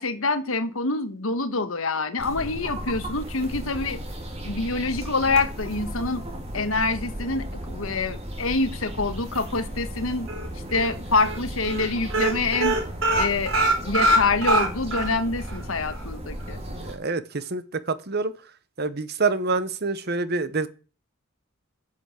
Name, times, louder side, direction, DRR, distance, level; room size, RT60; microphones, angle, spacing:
voice 1, 0.0-4.0 4.4-6.2 6.5-10.3 10.7-12.8 13.1-13.5 13.8-16.6, left 3 dB, 75° left, 1.4 m, -26 dB
sound 1, 2.2-16.9, right 1 dB, 30° right, 3.4 m, -35 dB
sound 2, 10.3-10.9 11.2-11.4 11.6-11.9 12.1-15.1 15.5-15.6 15.9-16.0, right 1 dB, 75° right, 4.9 m, -22 dB
voice 2, 16.7-18.3 18.8-20.7, right 3 dB, 50° right, 1.0 m, -27 dB
10.5 x 7.1 x 8.2 m
head